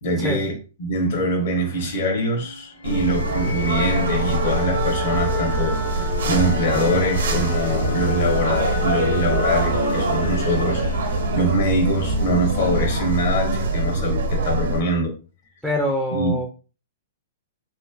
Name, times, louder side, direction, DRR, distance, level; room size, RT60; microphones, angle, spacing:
voice 1, 0.0-15.1 16.1-16.3, equal, 60° left, 1.1 m, -24 dB
sound 1, 1.1-14.8, left 5 dB, 85° left, 1.7 m, -32 dB
sound 2, 2.8-14.8, right 2 dB, 80° right, 0.7 m, -24 dB
Wind instrument woodwind instrument, 2.9-7.3, left 3 dB, 45° left, 0.8 m, -31 dB
voice 2, 15.6-16.5, equal, ahead, 0.4 m, -24 dB
3.1 x 3.0 x 2.3 m
hypercardioid pair, 170°, 0 cm